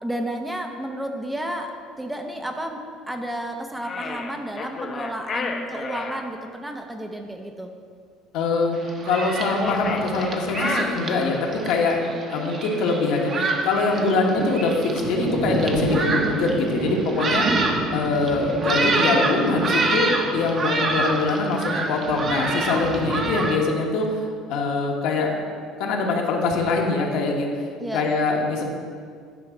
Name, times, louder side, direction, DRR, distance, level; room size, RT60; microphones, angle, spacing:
voice 1, 0.0-7.7 12.1-12.5 17.5-17.7 27.8-28.2, right 1 dB, 5° right, 4 dB, 0.5 m, -32 dB
sound 1, 3.8-6.3 9.4-11.6, left 4 dB, 35° left, 0.6 m, -31 dB
voice 2, 8.3-8.8 9.0-11.4 11.6-12.0 12.3-17.5 17.9-25.3 25.8-27.5 27.9-28.6, left 3 dB, 70° left, 0 dB, 1.3 m, -23 dB
Thunderstorm, 8.7-23.6, right 3 dB, 35° right, 0.9 m, -26 dB
9.6 x 4.0 x 5.9 m, 2.2 s
cardioid pair, 145°, 0 cm